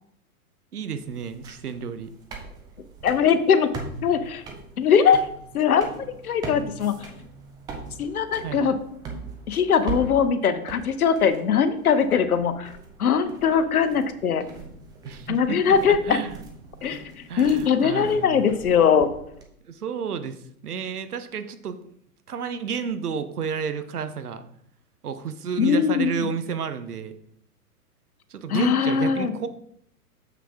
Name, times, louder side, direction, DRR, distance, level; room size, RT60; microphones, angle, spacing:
voice 1, 0.7-2.1 8.4-8.7 15.0-16.4 17.3-18.6 19.6-21.8 22.3-24.4 25.0-27.1 28.3-29.5, right 6 dB, 75° right, 10 dB, 0.9 m, -31 dB
sound 1, 1.0-19.4, right 4 dB, 10° right, 0.5 m, -41 dB
voice 2, 3.0-3.7 4.0-4.4 4.8-5.3 5.5-5.9 6.2-6.9 8.0-8.8 9.5-12.7 13.0-14.4 15.3-16.2 16.8-17.0 17.4-19.1 25.6-26.3 28.5-29.3, left 7 dB, 70° left, 11 dB, 0.9 m, -21 dB
7.0 x 5.8 x 3.5 m, 0.70 s
figure-of-eight pair, 105°, 46 cm